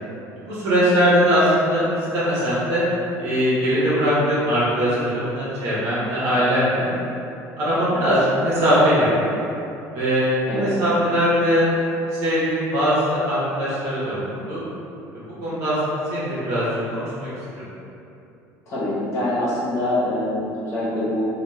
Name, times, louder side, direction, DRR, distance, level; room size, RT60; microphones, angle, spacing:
voice 1, 0.4-1.8 2.1-2.8 3.2-6.9 7.6-9.1 9.9-11.7 12.2-14.6 15.1-17.3 17.5-17.7, equal, 65° right, -10 dB, 0.9 m, -21 dB
voice 2, 18.7-21.3, left 1 dB, 45° left, -9 dB, 1.0 m, -24 dB
2.8 x 2.4 x 2.3 m, 2.8 s
cardioid pair, 135°, 6 cm